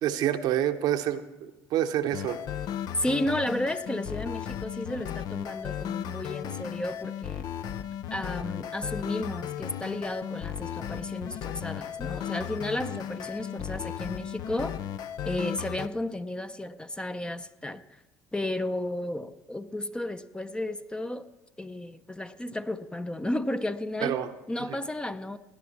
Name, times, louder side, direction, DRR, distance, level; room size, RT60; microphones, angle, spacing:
voice 1, 0.0-2.4 24.0-24.3, right 11 dB, 70° right, 8 dB, 0.8 m, -27 dB
sound 1, 2.1-15.9, left 10 dB, 60° left, 0.5 m, -35 dB
voice 2, 3.0-7.5 8.1-14.8 15.3-17.8 18.3-21.3 21.6-24.2 24.5-25.4, left 1 dB, 10° left, 11 dB, 0.6 m, -33 dB
17.5 x 10.5 x 4.2 m, 1.1 s
supercardioid pair, 75°, 7 cm